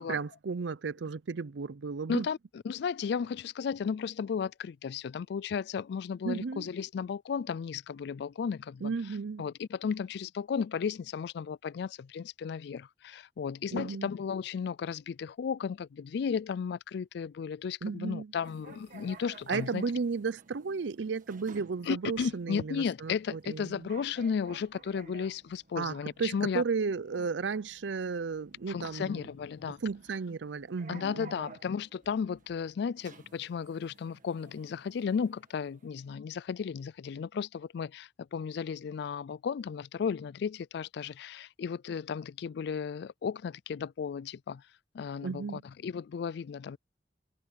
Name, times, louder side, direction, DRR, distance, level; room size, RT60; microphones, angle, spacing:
voice 1, 0.0-2.3 6.2-6.7 8.8-9.4 13.7-14.1 17.8-18.3 19.5-23.9 25.8-29.2 29.8-31.4 45.2-45.6, right 5 dB, 85° right, 0.5 m, -34 dB
voice 2, 2.1-8.9 9.4-19.8 21.9-26.6 28.7-29.8 30.9-44.6 44.9-46.8, left 6 dB, 65° left, 0.3 m, -34 dB
sound 1, 18.4-36.0, right 3 dB, 50° right, 1.7 m, -55 dB
head